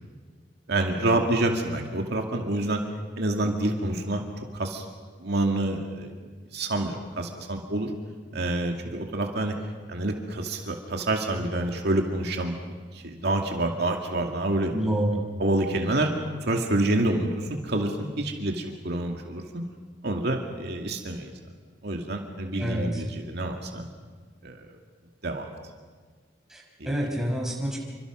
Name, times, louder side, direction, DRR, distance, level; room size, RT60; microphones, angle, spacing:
voice 1, 0.7-2.8 3.2-4.2 4.5-4.9 5.2-6.1 6.5-7.9 8.3-9.6 9.9-12.6 12.9-14.8 15.4-16.1 16.5-19.6 20.0-21.3 21.8-23.9 24.4-24.8 25.2-25.5 26.8-27.0, right 2 dB, 65° right, 2 dB, 2.3 m, -27 dB
voice 2, 14.7-15.2 22.6-23.0 26.5-27.8, right 1 dB, 5° right, -2 dB, 5.8 m, -28 dB
28.0 x 25.5 x 6.2 m, 1.6 s
head